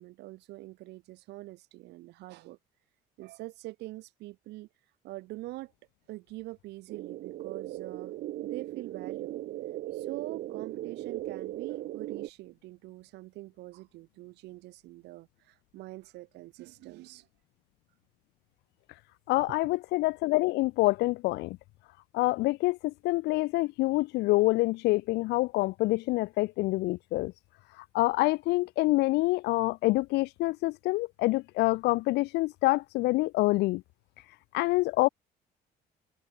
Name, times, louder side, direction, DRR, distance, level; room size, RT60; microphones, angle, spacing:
voice 1, 0.0-2.6 3.2-4.7 5.0-5.7 6.1-8.1 8.4-9.3 9.9-17.3 19.4-19.5, right 19 dB, 85° right, 6.4 m, -44 dB
sound 1, 6.9-12.3, right 14 dB, 70° right, 1.2 m, -38 dB
voice 2, 19.3-21.6 22.1-27.3 27.9-33.8 34.5-35.1, left 20 dB, 85° left, 0.8 m, -26 dB
cardioid pair, 110°, 17 cm